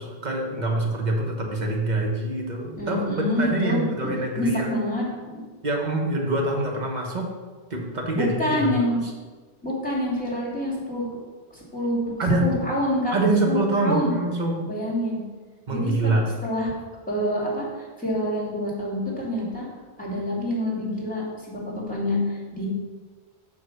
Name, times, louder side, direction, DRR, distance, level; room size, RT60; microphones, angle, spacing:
voice 1, 0.0-3.0 3.3-4.7 5.6-7.3 7.7-8.8 12.2-12.5 13.1-14.6 15.7-16.2, right 2 dB, 40° right, 0 dB, 1.4 m, -25 dB
voice 2, 2.8-5.0 5.3-5.4 8.1-9.0 9.6-11.2 11.5-12.1 12.4-13.1 13.4-14.1 14.6-15.2 15.7-16.7 17.1-19.6 20.0-22.7, left 1 dB, 5° left, -5 dB, 2.4 m, -27 dB
6.5 x 4.9 x 6.3 m, 1.4 s
omnidirectional pair, 1.1 m